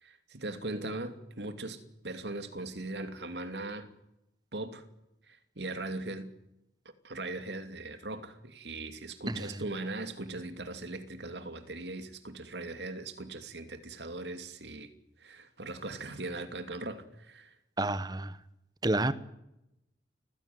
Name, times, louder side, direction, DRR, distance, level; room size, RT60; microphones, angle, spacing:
voice 1, 0.0-3.9 4.5-4.8 5.3-6.3 7.0-14.9 15.2-17.5, right 2 dB, 80° right, 2.7 m, -39 dB
voice 2, 9.3-9.6 17.8-18.4 18.8-19.1, right 2 dB, 25° right, 1.2 m, -30 dB
29.5 x 15.5 x 9.5 m
head